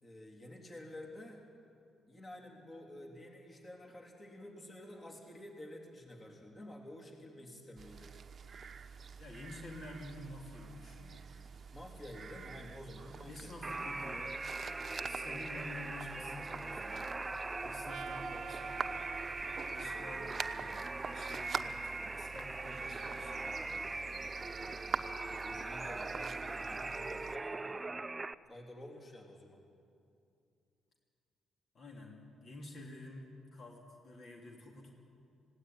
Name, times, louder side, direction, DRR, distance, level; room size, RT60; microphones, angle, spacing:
voice 1, 0.0-1.5 2.1-8.2 11.7-13.5 25.3-28.0 28.5-29.7, left 1 dB, 25° left, 0 dB, 3.5 m, -50 dB
sound 1, 7.8-27.4, right 6 dB, 45° right, 0.9 m, -46 dB
voice 2, 9.2-11.2 13.3-14.3 15.0-17.1 17.6-19.0 19.7-24.1 31.7-34.9, left 2 dB, 50° left, 0 dB, 3.1 m, -50 dB
sound 2, 13.6-28.3, right 3 dB, 20° right, 0.5 m, -41 dB
Trumpet, 17.9-22.2, right 8 dB, 65° right, 0.6 m, -50 dB
19.0 x 16.5 x 9.4 m, 2.5 s
cardioid pair, 90°, 0 cm